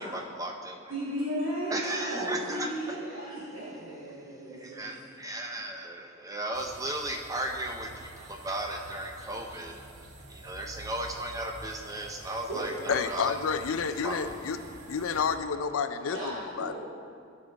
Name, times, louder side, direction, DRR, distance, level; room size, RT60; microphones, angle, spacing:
voice 1, 0.1-0.9 1.7-3.0 3.2-3.5 4.3-9.7 10.3-14.7 16.6-16.7, right 1 dB, 15° right, 2 dB, 0.6 m, -36 dB
voice 2, 0.9-4.9 12.5-12.9 16.0-16.7, equal, 90° right, -10 dB, 2.5 m, -35 dB
sound 1, 6.5-15.4, right 2 dB, 60° right, 0.9 m, -48 dB
voice 3, 12.9-14.6 14.9-16.7, left 6 dB, 90° left, 10 dB, 0.5 m, -30 dB
14.5 x 5.4 x 4.0 m, 2.3 s
head